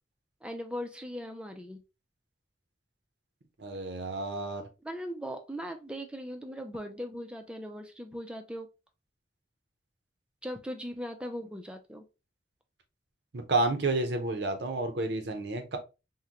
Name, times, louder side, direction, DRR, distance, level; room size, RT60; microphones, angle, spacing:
voice 1, 0.4-1.8 4.8-8.7 10.4-12.1, equal, 5° right, 0.4 m, -39 dB
voice 2, 3.6-4.6 13.3-15.8, right 2 dB, 75° right, 0.7 m, -30 dB
3.7 x 2.2 x 2.8 m
head